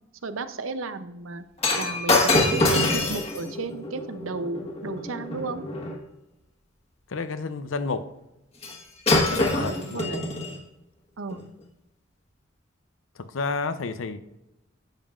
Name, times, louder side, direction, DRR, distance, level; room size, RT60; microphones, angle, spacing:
voice 1, 0.2-1.4 1.7-5.6 9.3-10.2 11.2-11.4, right 3 dB, 90° right, 11 dB, 0.6 m, -34 dB
Shatter, 1.6-6.0 8.6-8.8 9.1-10.6 11.3-11.4, left 2 dB, 30° left, 1.3 m, -25 dB
voice 2, 7.1-8.1 9.3-10.1 13.2-14.2, left 4 dB, 80° left, 11 dB, 0.6 m, -30 dB
10.5 x 7.4 x 2.5 m, 0.90 s
head